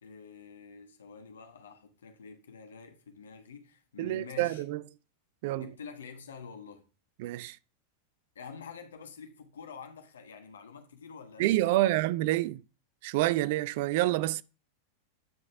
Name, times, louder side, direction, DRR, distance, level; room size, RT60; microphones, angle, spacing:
voice 1, 0.0-4.6 5.5-6.9 8.3-12.0, left 5 dB, 65° left, 1.2 m, -47 dB
voice 2, 4.0-4.8 5.4-5.7 7.2-7.6 11.4-12.6 13.0-14.4, right 16 dB, 50° right, 0.3 m, -28 dB
9.2 x 5.2 x 3.4 m
figure-of-eight pair, 90°, 0 cm